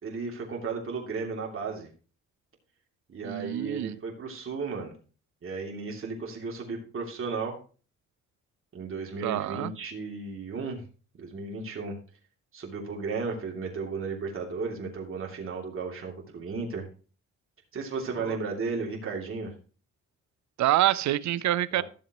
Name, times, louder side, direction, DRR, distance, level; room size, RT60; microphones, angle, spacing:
voice 1, 0.0-1.9 3.1-4.9 5.4-7.6 8.7-10.8 11.2-12.0 12.5-16.8 17.7-19.5 21.7-21.8, right 4 dB, 45° right, 2.9 m, -34 dB
voice 2, 3.2-4.0 9.2-9.7 18.2-18.4 20.6-21.8, right 13 dB, 70° right, 0.6 m, -26 dB
13.5 x 7.1 x 3.1 m
cardioid pair, 90°, 30 cm